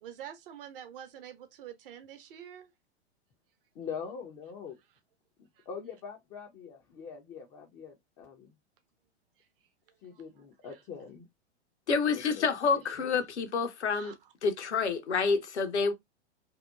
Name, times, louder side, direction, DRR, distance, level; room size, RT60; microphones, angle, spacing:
voice 1, 0.0-2.7 13.9-14.1, right 10 dB, 50° right, 0.6 m, -46 dB
voice 2, 3.7-4.8 5.4-8.5 10.0-11.3 12.1-12.5 12.7-13.1, left 6 dB, 20° left, 0.4 m, -43 dB
voice 3, 11.9-14.1 14.4-15.9, left 5 dB, 75° left, 0.7 m, -28 dB
2.8 x 2.0 x 2.2 m
figure-of-eight pair, 100°, 34 cm